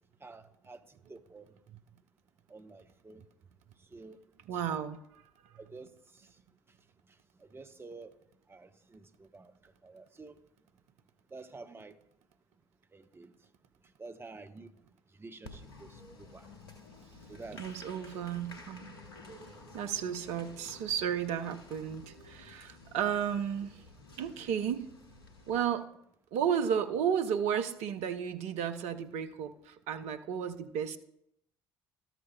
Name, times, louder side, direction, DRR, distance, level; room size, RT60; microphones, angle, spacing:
voice 1, 0.2-1.5 2.5-3.2 3.8-4.2 4.5-4.6 5.6-6.3 7.4-8.1 8.5-10.4 11.3-12.0 12.9-13.3 14.0-14.7 15.2-16.5 17.3-17.7 19.5-19.6 20.3-20.4, right 3 dB, 20° right, 0.7 m, -50 dB
voice 2, 4.5-5.0 17.5-18.9 19.7-23.8 24.2-24.9 25.5-25.9 26.3-31.0, right 8 dB, 60° right, 0.6 m, -33 dB
Applause, 15.4-25.6, left 2 dB, 80° left, 0.9 m, -52 dB
13.0 x 8.9 x 2.3 m
figure-of-eight pair, 50°, 13 cm